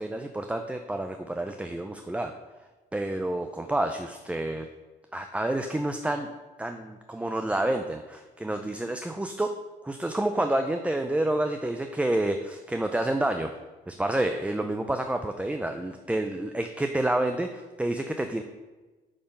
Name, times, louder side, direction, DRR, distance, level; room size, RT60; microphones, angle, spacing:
voice 1, 0.0-2.3 2.9-4.7 5.1-6.3 6.6-9.5 9.8-13.5 13.9-18.4, right 1 dB, 5° right, 6 dB, 0.4 m, -29 dB
8.7 x 3.6 x 5.4 m, 1.2 s
cardioid pair, 90°, 20 cm